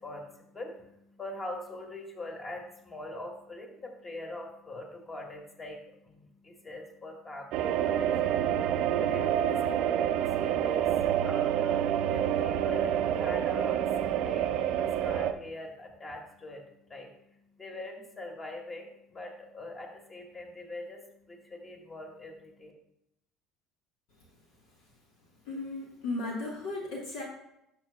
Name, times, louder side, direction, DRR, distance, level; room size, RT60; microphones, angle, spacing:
voice 1, 0.0-22.7, left 2 dB, 30° left, 1 dB, 2.3 m, -43 dB
sound 1, 7.5-15.3, right 10 dB, 65° right, 0.5 m, -28 dB
voice 2, 25.4-27.2, left 2 dB, 70° left, -1 dB, 1.5 m, -35 dB
11.5 x 6.7 x 2.3 m, 0.81 s
hypercardioid pair, 65°, 0 cm